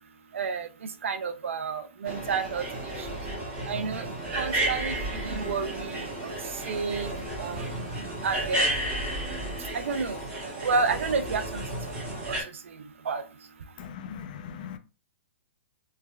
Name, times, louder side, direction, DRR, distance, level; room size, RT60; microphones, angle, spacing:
voice 1, 0.3-3.1 3.7-4.1 4.3-7.8 8.2-8.7 9.6-10.2 10.6-12.0 12.2-13.3, right 4 dB, 80° right, 0.5 m, -31 dB
sound 1, 2.0-12.4, right 1 dB, 25° right, 1.6 m, -32 dB
voice 2, 13.8-14.8, left 8 dB, 40° left, 0.4 m, -39 dB
3.5 x 3.2 x 2.2 m
hypercardioid pair, 160°, 7 cm